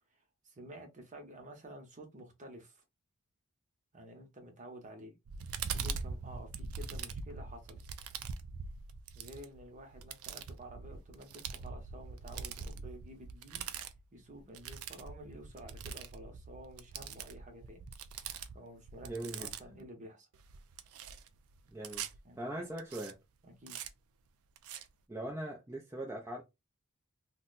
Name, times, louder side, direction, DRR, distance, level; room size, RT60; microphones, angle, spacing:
voice 1, 0.1-2.8 3.9-5.1 5.7-7.8 9.1-13.6 14.1-17.8 18.5-20.3 22.2-22.7 23.4-23.8, right 1 dB, 35° right, 0.9 m, -51 dB
sound 1, 5.3-19.8 20.3-22.2 22.8-23.1 23.7-23.9 24.6-24.8, right 6 dB, 70° right, 0.4 m, -43 dB
voice 2, 19.0-19.5 21.7-22.0 22.4-23.2 25.1-26.4, right 1 dB, 15° right, 0.5 m, -40 dB
2.7 x 2.2 x 3.9 m
head